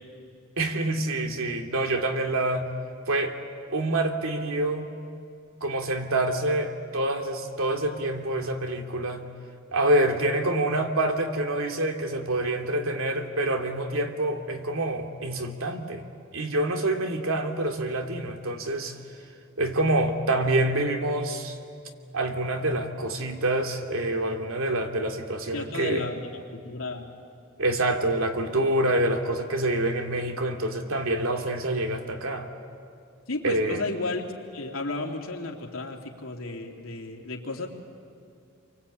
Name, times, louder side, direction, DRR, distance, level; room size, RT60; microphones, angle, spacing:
voice 1, 0.6-2.7 3.1-3.4 3.7-4.9 5.6-9.3 9.7-16.0 16.3-19.0 19.6-21.6 22.1-26.0 27.6-32.5 33.4-33.8, right 1 dB, 90° right, 4 dB, 2.5 m, -26 dB
voice 2, 25.5-27.1 33.3-34.3 34.5-37.7, left 2 dB, 90° left, 1 dB, 2.9 m, -33 dB
29.0 x 24.0 x 8.7 m, 2.5 s
head